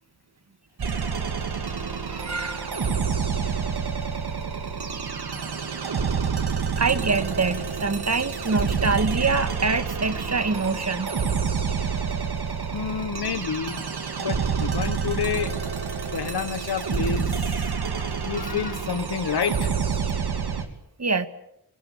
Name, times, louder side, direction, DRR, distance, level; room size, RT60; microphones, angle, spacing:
sound 1, 0.8-20.6, right 6 dB, 85° right, 2.9 m, -28 dB
voice 1, 1.9-2.7 6.8-11.1 21.0-21.3, right 4 dB, 45° right, 11 dB, 1.9 m, -25 dB
voice 2, 12.7-13.8 14.2-15.6 16.1-19.7, left 7 dB, 85° left, 14 dB, 1.4 m, -29 dB
26.5 x 20.0 x 8.2 m, 0.80 s
wide cardioid pair, 70°, 38 cm